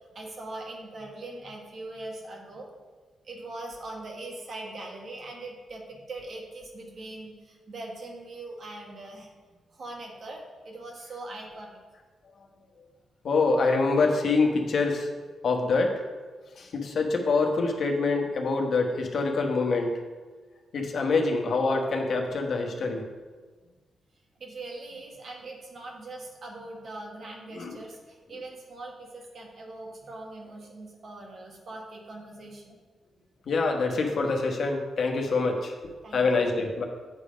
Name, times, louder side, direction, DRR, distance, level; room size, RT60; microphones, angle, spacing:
voice 1, 0.1-2.7 3.2-9.3 9.7-11.8 24.4-32.8 36.0-36.5, right 2 dB, 60° right, 0 dB, 1.4 m, -41 dB
voice 2, 13.2-15.1 15.4-16.0 16.5-20.0 20.7-23.1 27.5-27.8 33.5-35.7 36.1-36.8, left 3 dB, 65° left, 2 dB, 1.1 m, -25 dB
8.1 x 3.5 x 5.0 m, 1.4 s
supercardioid pair, 55°, 0 cm